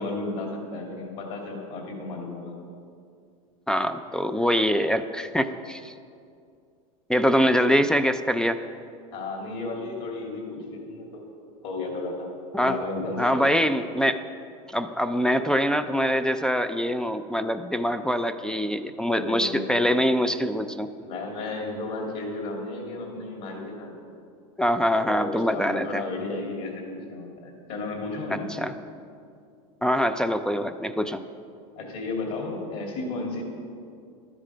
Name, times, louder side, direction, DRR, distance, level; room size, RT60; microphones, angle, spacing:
voice 1, 0.0-2.6 9.1-11.3 11.6-12.3 12.6-13.5 19.1-19.9 21.0-23.9 25.0-28.5 31.7-33.4, left 2 dB, 55° left, 1 dB, 2.9 m, -33 dB
voice 2, 3.7-5.9 7.1-8.6 12.5-12.8 13.2-14.2 14.7-20.9 24.6-26.0 28.3-28.7 29.8-31.2, equal, 5° left, 10 dB, 0.3 m, -24 dB
12.5 x 10.0 x 5.0 m, 2.4 s
supercardioid pair, 130°, 18 cm